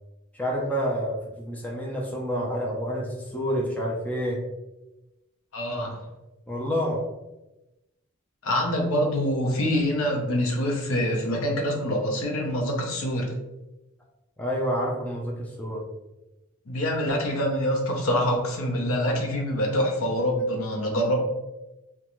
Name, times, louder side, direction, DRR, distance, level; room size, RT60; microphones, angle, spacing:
voice 1, 0.3-4.4 6.5-7.0 14.4-15.8, equal, 5° left, -3 dB, 0.4 m, -28 dB
voice 2, 5.5-6.0 8.4-13.3 16.7-21.2, equal, 70° left, 0 dB, 0.6 m, -25 dB
2.4 x 2.2 x 2.9 m, 0.99 s
head